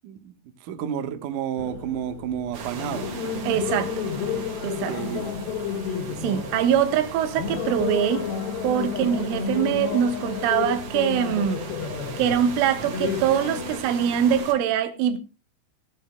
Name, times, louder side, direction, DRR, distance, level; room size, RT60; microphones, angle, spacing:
voice 1, 0.0-3.1 4.9-5.3, right 9 dB, 70° right, 1.9 m, -31 dB
sound 1, 1.6-13.8, left 6 dB, 70° left, 3.5 m, -31 dB
sound 2, 2.5-14.5, right 6 dB, 55° right, 2.9 m, -39 dB
voice 2, 3.4-4.0 4.6-5.0 6.2-8.3 8.6-11.7 12.2-15.2, right 9 dB, 90° right, 3.8 m, -23 dB
16.0 x 14.0 x 2.2 m
omnidirectional pair, 5.5 m